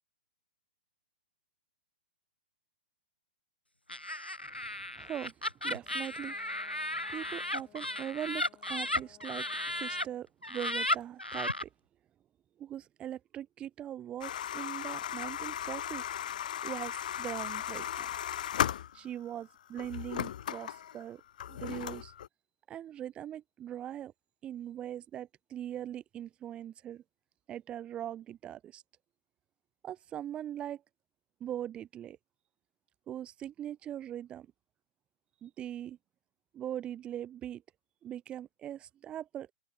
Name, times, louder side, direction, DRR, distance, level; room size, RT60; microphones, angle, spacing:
Laughter, 3.9-10.0 10.4-11.6, left 1 dB, 85° left, 1.9 m, -35 dB
voice 1, 4.9-5.3 5.6-6.4 6.9-11.7 12.6-16.1 16.6-18.1 18.9-21.2 21.5-22.1 22.7-24.1 24.4-27.0 27.5-28.8 29.8-30.8 31.4-32.2 33.1-34.5 35.4-36.0 36.5-37.6 38.0-39.5, right 11 dB, 20° right, 1.0 m, -41 dB
Brass instrument, 5.8-10.3, left 14 dB, 25° left, 6.0 m, -61 dB
sound 1, 14.2-19.3 19.8-22.3, left 10 dB, 55° left, 0.8 m, -36 dB
figure-of-eight pair, 115°, 5 cm